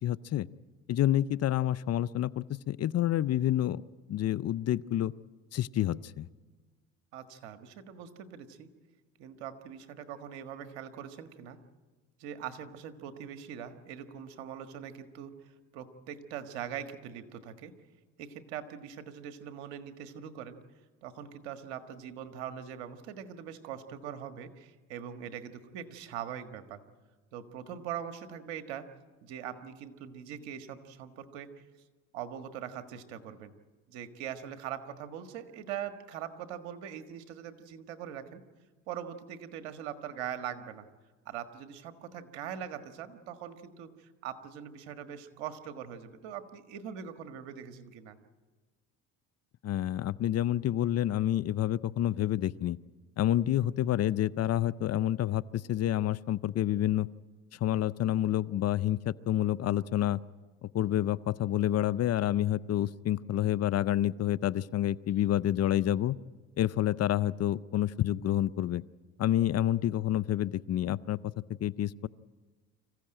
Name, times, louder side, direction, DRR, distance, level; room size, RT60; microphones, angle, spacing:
voice 1, 0.0-0.5 0.9-3.8 4.1-5.1 5.5-6.3 49.6-52.8 53.2-57.1 57.6-60.2 60.6-66.2 66.6-68.8 69.2-71.2 71.6-72.1, left 12 dB, 45° left, 19 dB, 0.6 m, -28 dB
voice 2, 7.1-8.7 9.2-11.6 12.2-17.7 18.2-20.6 21.0-26.8 27.3-28.9 29.2-31.5 32.1-33.5 33.9-38.4 38.9-40.9 41.2-48.2, right 9 dB, 85° right, 9 dB, 1.7 m, -42 dB
25.5 x 15.0 x 8.9 m, 1.4 s
supercardioid pair, 80°, 37 cm